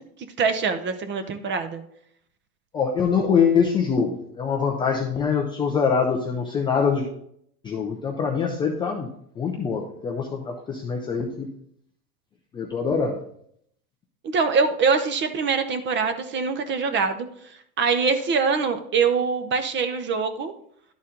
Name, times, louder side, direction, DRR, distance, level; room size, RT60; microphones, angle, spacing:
voice 1, 0.4-1.8 14.2-17.3 17.8-20.5, right 5 dB, 25° right, 9 dB, 0.7 m, -23 dB
voice 2, 2.7-7.1 7.6-9.1 9.4-11.5 12.5-13.2, left 6 dB, 10° left, 1 dB, 0.3 m, -24 dB
11.0 x 4.1 x 3.7 m, 0.70 s
supercardioid pair, 125°, 46 cm